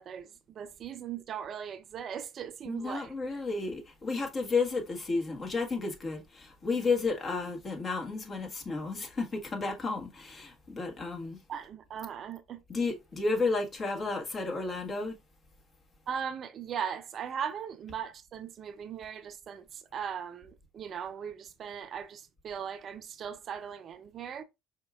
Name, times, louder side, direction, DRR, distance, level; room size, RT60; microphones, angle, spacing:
voice 1, 0.0-3.1 11.5-12.6 16.1-24.4, right 8 dB, 45° right, 0.5 m, -39 dB
voice 2, 2.6-11.4 12.7-15.2, left 3 dB, 35° left, 1.4 m, -32 dB
5.1 x 3.6 x 2.3 m
hypercardioid pair, 60°, 0 cm